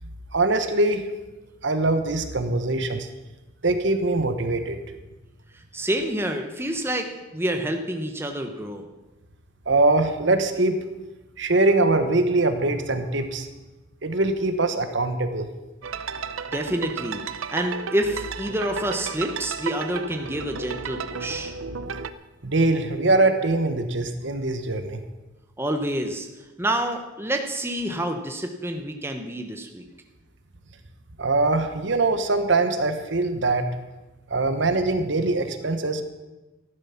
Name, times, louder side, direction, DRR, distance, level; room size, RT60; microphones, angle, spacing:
voice 1, 0.3-1.1 1.6-3.1 3.6-4.8 9.7-10.8 11.4-13.5 14.0-15.5 22.4-25.0 31.2-33.7 34.3-36.0, right 2 dB, 60° right, 8 dB, 1.3 m, -22 dB
voice 2, 5.5-8.9 16.5-17.2 17.5-21.6 25.6-26.3 26.6-29.8, right 1 dB, 10° right, 4 dB, 1.0 m, -28 dB
sound 1, 15.8-22.1, right 5 dB, 85° right, 0.7 m, -33 dB
14.0 x 11.5 x 5.9 m, 1.1 s
head